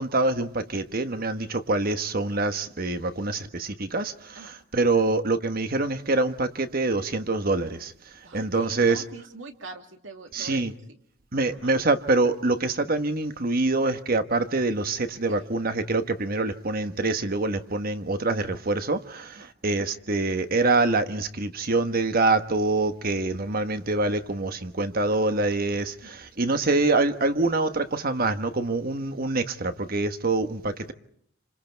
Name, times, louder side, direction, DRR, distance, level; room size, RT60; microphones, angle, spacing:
voice 1, 0.0-4.4 4.7-7.9 8.3-9.0 10.3-10.7 11.3-30.9, right 2 dB, 50° right, 1.3 m, -25 dB
voice 2, 8.2-10.6 11.5-11.7 15.3-15.5 19.3-19.5 26.0-26.2, right 3 dB, 70° right, 2.5 m, -43 dB
28.5 x 26.5 x 4.6 m
head